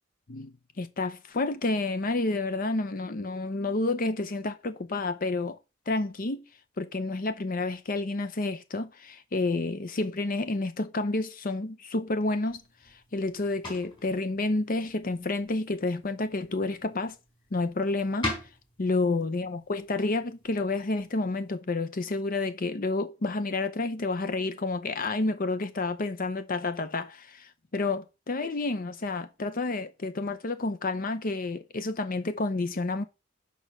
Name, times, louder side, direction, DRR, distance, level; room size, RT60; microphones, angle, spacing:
voice 1, 0.3-5.6 5.9-6.4 6.8-12.6 13.1-17.2 17.5-18.3 18.8-33.0, left 2 dB, 45° left, 0.7 m, -30 dB
sound 1, 12.4-21.6, left 2 dB, 25° left, 4.1 m, -43 dB
6.2 x 5.4 x 6.1 m
head